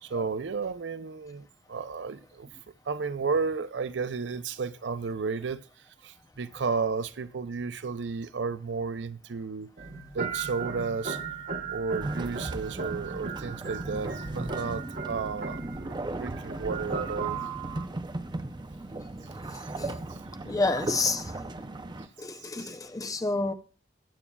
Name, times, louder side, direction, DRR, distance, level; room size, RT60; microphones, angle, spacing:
voice 1, 0.0-2.5 2.9-5.6 6.0-9.7 10.1-11.2 11.7-17.4 20.1-20.2 22.6-22.7, right 4 dB, 85° right, 0.5 m, -33 dB
sound 1, 9.8-17.9, right 5 dB, 55° right, 1.0 m, -37 dB
sound 2, 12.0-22.1, right 2 dB, 25° right, 0.5 m, -37 dB
voice 2, 20.4-21.3 22.2-23.5, left 3 dB, 20° left, 0.6 m, -29 dB
19.0 x 8.4 x 2.3 m
head